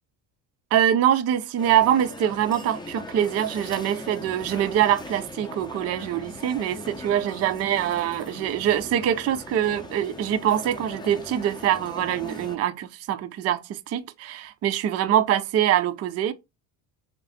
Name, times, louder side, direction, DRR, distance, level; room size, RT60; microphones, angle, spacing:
voice 1, 0.7-16.3, right 10 dB, 30° right, 0.5 m, -24 dB
sound 1, 1.6-12.6, left 2 dB, 10° left, 0.6 m, -40 dB
3.6 x 3.2 x 3.8 m
hypercardioid pair, 60°, 49 cm